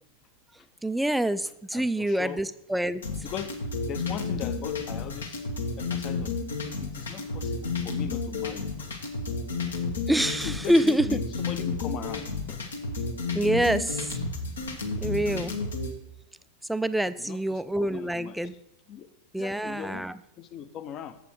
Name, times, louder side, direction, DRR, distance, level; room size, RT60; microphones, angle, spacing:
voice 1, 0.8-3.0 10.1-11.1 13.3-14.2 15.0-15.6 16.7-18.5 19.3-20.1, right 1 dB, 5° right, 14 dB, 0.3 m, -26 dB
voice 2, 1.7-2.4 3.2-3.5 3.8-5.5 5.8-6.4 6.8-8.9 10.4-12.6 17.2-18.4 18.9-19.1 19.3-20.0 20.4-21.2, left 9 dB, 35° left, 11 dB, 0.6 m, -39 dB
sound 1, 3.0-15.9, left 4 dB, 70° left, 1.1 m, -31 dB
7.5 x 6.8 x 4.5 m, 0.80 s
figure-of-eight pair, 90°, 0 cm